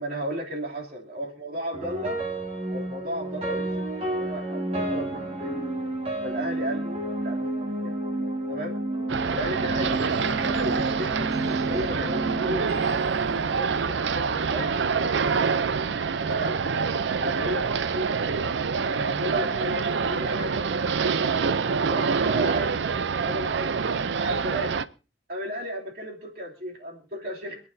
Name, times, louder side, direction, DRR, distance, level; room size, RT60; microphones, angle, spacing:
voice 1, 0.0-2.2 2.7-5.7 6.2-7.8 8.5-8.8 9.3-13.1 13.5-15.4 16.3-16.8 17.2-18.5 18.8-21.6 21.9-22.8 23.2-23.8 24.2-24.8 25.3-27.6, equal, 55° right, -1 dB, 2.8 m, -34 dB
sound 1, 1.7-14.0, right 2 dB, 35° right, 2.2 m, -31 dB
sound 2, 9.1-24.8, right 5 dB, 75° right, 0.5 m, -26 dB
26.5 x 9.3 x 2.7 m, 0.33 s
head